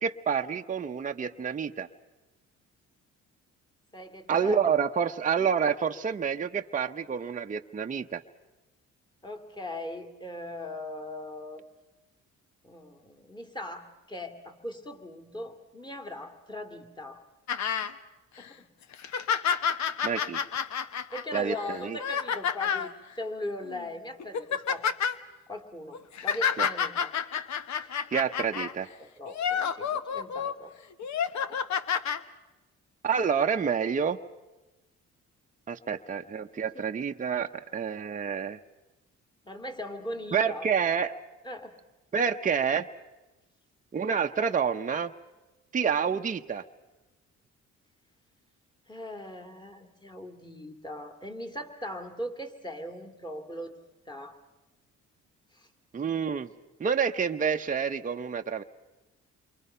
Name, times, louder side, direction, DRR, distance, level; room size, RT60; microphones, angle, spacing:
voice 1, 0.0-1.9 4.3-8.2 20.0-20.4 21.3-22.0 26.6-26.7 28.1-28.9 33.0-34.2 35.7-38.6 40.3-41.2 42.1-42.9 43.9-45.1 45.7-46.6 55.9-56.5 56.8-58.6, right 6 dB, 25° right, 4 dB, 0.8 m, -28 dB
voice 2, 3.9-4.6 9.2-11.7 12.6-17.2 18.4-18.7 21.1-24.9 25.5-27.1 27.8-27.9 28.6-28.7 29.0-30.7 31.4-31.6 36.5-36.8 39.5-40.7 41.4-41.7 48.9-53.8 54.1-54.4 55.5-55.7, left 1 dB, 15° left, 6 dB, 2.4 m, -40 dB
sound 1, 17.5-17.9 18.4-18.5 18.9-22.9 23.7-23.8 24.2-25.2 25.9-28.7 29.3-30.5 31.0-32.2 33.1-33.2, left 7 dB, 65° left, 1.1 m, -29 dB
28.5 x 23.5 x 5.6 m, 1.1 s
cardioid pair, 90°, 30 cm